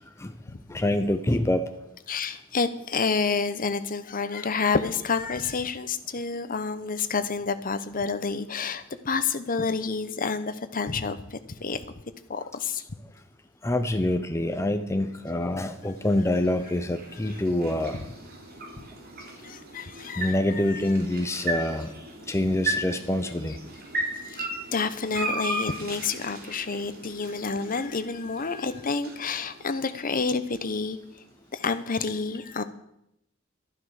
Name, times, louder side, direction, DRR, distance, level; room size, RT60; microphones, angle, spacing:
voice 1, 0.7-1.7 13.6-18.0 20.2-21.9 22.3-23.6, left 1 dB, 15° left, 7 dB, 0.7 m, -26 dB
voice 2, 2.1-11.8 12.3-12.8 17.9-18.0 19.4-20.8 24.2-31.0 31.5-32.6, left 4 dB, 40° left, 11 dB, 0.9 m, -29 dB
sound 1, 15.1-31.3, right 2 dB, 50° right, 3.3 m, -37 dB
12.0 x 11.0 x 6.5 m, 0.79 s
head